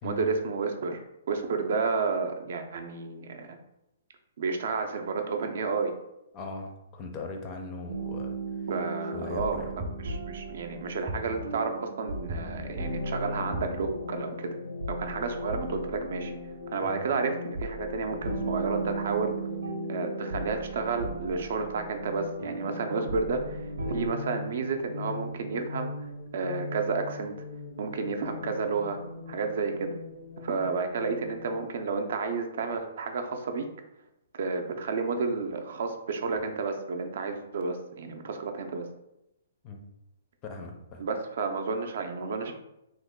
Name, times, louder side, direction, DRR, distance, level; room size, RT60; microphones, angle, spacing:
voice 1, 0.0-3.6 4.4-5.9 8.7-9.6 10.0-14.5 14.9-16.3 16.7-19.4 19.9-27.3 27.8-29.0 29.3-29.9 30.4-33.7 34.3-38.9 41.0-42.5, right 4 dB, 60° right, 5 dB, 0.4 m, -31 dB
voice 2, 6.3-8.4 9.1-9.7 16.8-17.0 39.6-39.8 40.4-41.0, left 3 dB, 25° left, 3 dB, 0.4 m, -39 dB
sound 1, 7.9-24.1, right 2 dB, 90° right, 0.7 m, -37 dB
sound 2, 9.8-10.4 11.1-11.7 12.3-12.9 13.5-14.2, equal, 25° right, 0.6 m, -38 dB
sound 3, 12.4-31.6, left 4 dB, 85° left, 0.7 m, -41 dB
3.0 x 2.2 x 3.6 m, 0.86 s
hypercardioid pair, 160°, 0 cm